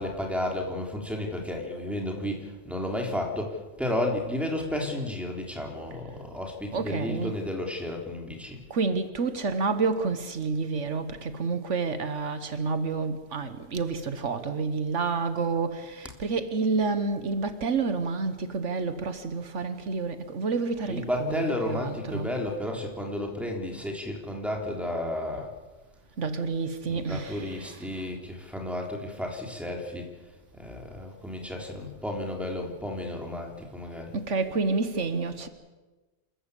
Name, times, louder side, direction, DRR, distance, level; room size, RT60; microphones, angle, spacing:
voice 1, 0.0-8.6 20.9-25.5 26.9-30.1 30.5-34.1, left 1 dB, ahead, 3.4 m, -32 dB
voice 2, 6.7-7.4 8.7-22.3 26.2-28.1 34.1-35.5, right 4 dB, 75° right, 1.6 m, -29 dB
27.0 x 14.5 x 8.3 m
omnidirectional pair, 1.2 m